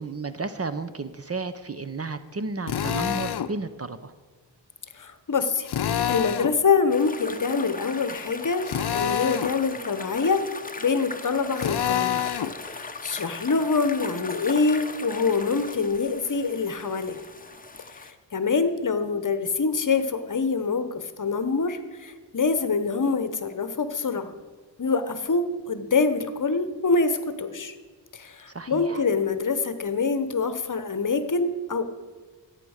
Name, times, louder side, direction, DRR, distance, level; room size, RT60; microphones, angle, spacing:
voice 1, 0.0-4.1 28.5-29.0, right 3 dB, 35° right, 12 dB, 0.7 m, -33 dB
Drill, 2.7-3.5 5.7-6.6 8.6-9.5 11.6-12.5, left 9 dB, 60° left, 0.7 m, -27 dB
voice 2, 5.0-5.7 6.1-8.7 8.9-10.5 10.8-12.2 12.7-17.2 18.0-24.3 24.8-27.7 28.1-31.8, left 4 dB, 45° left, 10 dB, 1.0 m, -25 dB
sound 1, 6.9-18.1, left 3 dB, 20° left, 0.9 m, -39 dB
14.5 x 9.2 x 6.4 m, 1.5 s
wide cardioid pair, 105°, 44 cm